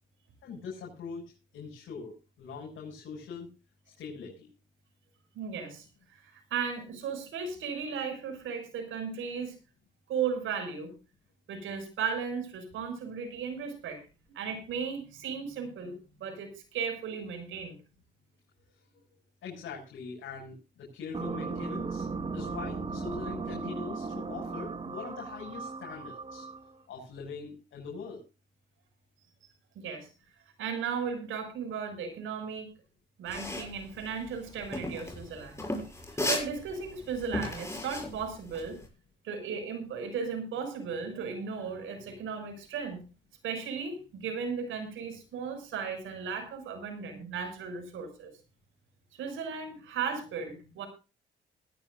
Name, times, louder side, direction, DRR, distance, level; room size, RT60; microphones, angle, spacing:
voice 1, 0.4-1.2 1.5-3.5 3.9-4.5 18.7-18.8 19.4-22.1 22.3-26.5 26.9-28.2, left 5 dB, 75° left, -3 dB, 6.9 m, -42 dB
voice 2, 5.3-9.5 10.1-10.9 11.5-14.0 14.3-15.9 16.2-17.8 29.7-30.1 30.6-32.7 33.2-35.6 36.1-38.8 39.2-43.0 43.4-48.3 49.1-50.9, right 6 dB, 80° right, 6 dB, 6.2 m, -36 dB
sound 1, 21.1-26.8, right 4 dB, 25° right, 1.5 m, -37 dB
sound 2, 33.3-38.8, left 1 dB, 15° left, 6.8 m, -35 dB
18.5 x 15.5 x 2.6 m, 0.32 s
cardioid pair, 90°, 20 cm